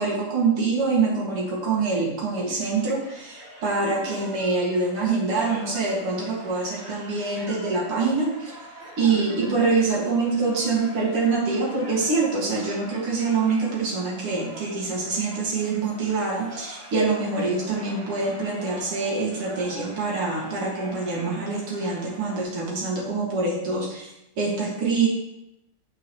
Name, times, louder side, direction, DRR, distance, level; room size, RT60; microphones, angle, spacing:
voice 1, 0.0-8.5 9.0-25.1, right 4 dB, 90° right, -4 dB, 2.9 m, -25 dB
sound 1, 2.7-22.4, right 1 dB, 65° right, 4.0 m, -44 dB
9.2 x 5.5 x 3.0 m, 0.86 s
omnidirectional pair, 2.4 m